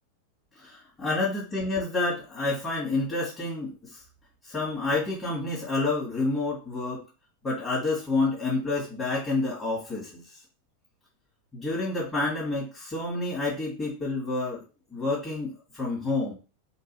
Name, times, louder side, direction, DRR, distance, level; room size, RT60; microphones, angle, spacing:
voice 1, 0.6-4.0 4.5-7.0 7.4-10.2 11.5-14.6 14.9-16.3, left 3 dB, 15° left, -6 dB, 1.4 m, -29 dB
3.7 x 2.3 x 3.0 m, 0.33 s
figure-of-eight pair, 90°, 0 cm